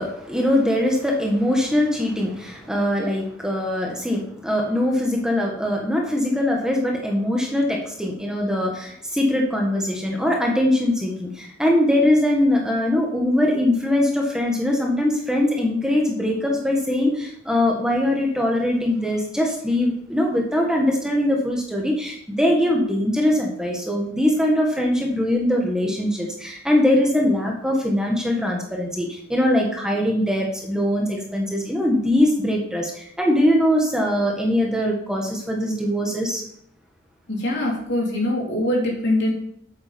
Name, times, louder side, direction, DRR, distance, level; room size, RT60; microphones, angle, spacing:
voice 1, 0.0-36.4, left 1 dB, 5° right, -1 dB, 1.5 m, -22 dB
voice 2, 37.3-39.3, left 1 dB, 60° left, -2 dB, 3.6 m, -23 dB
8.6 x 8.2 x 5.2 m, 0.70 s
head